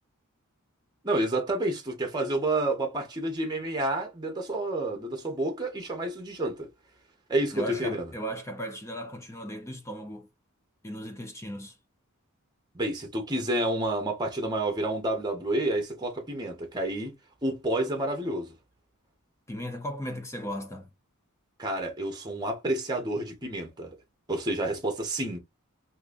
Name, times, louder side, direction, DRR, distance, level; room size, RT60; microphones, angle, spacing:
voice 1, 1.0-6.7 7.3-8.1 12.7-17.1 17.4-18.5 21.6-24.0 24.3-25.4, right 1 dB, 20° right, 0.8 m, -29 dB
voice 2, 7.5-10.3 10.8-11.8 19.5-20.9, equal, 15° left, 0.6 m, -36 dB
3.7 x 2.8 x 2.5 m
head